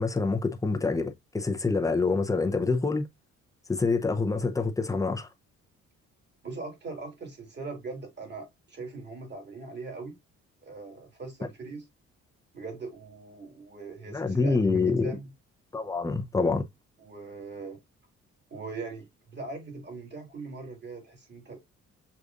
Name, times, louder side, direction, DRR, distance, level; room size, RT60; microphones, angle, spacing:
voice 1, 0.0-3.1 3.7-5.3 14.1-15.2 15.7-16.6, left 4 dB, 10° left, 0.7 m, -26 dB
voice 2, 6.4-10.2 10.6-11.8 12.5-15.3 17.0-17.8 18.5-21.6, right 3 dB, 35° right, 2.2 m, -41 dB
6.5 x 2.5 x 2.5 m
cardioid pair, 90°, 30 cm